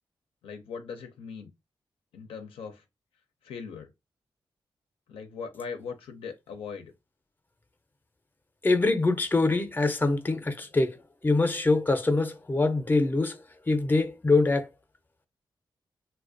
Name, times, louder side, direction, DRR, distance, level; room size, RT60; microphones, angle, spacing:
voice 1, 0.4-1.5 2.1-2.8 3.4-3.9 5.1-6.9, left 5 dB, 85° left, 0.4 m, -39 dB
voice 2, 8.6-11.0 11.2-14.7, left 3 dB, 20° left, 0.5 m, -24 dB
2.4 x 2.1 x 2.5 m
cardioid pair, 50°, 9 cm